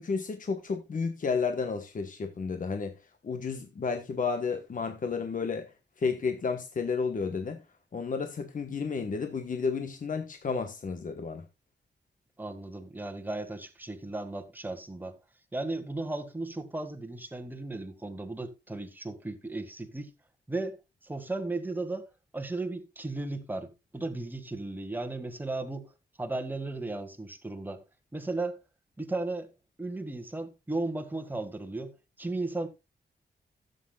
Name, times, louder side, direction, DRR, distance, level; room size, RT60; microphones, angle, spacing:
voice 1, 0.0-2.9 3.2-5.7 6.0-7.6 7.9-11.4, left 5 dB, 45° left, 1.2 m, -32 dB
voice 2, 12.4-15.2 15.5-20.1 20.5-20.8 21.0-22.1 22.3-25.9 26.2-27.8 28.1-28.6 29.0-29.5 29.8-31.9 32.2-32.7, right 2 dB, 10° right, 1.6 m, -35 dB
15.5 x 8.2 x 2.3 m
wide cardioid pair, 175°, 18 cm